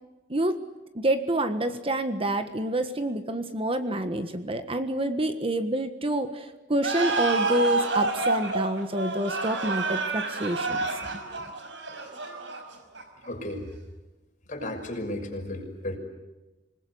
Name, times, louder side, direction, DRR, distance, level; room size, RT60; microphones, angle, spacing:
voice 1, 0.3-0.6 0.9-10.8 11.1-11.2, right 1 dB, 30° right, 8 dB, 1.5 m, -27 dB
sound 1, 6.8-13.3, right 3 dB, 80° right, 5.3 m, -29 dB
voice 2, 13.2-13.6 14.5-16.0, left 1 dB, 45° left, 3 dB, 6.0 m, -34 dB
27.5 x 20.0 x 9.6 m, 1.1 s
head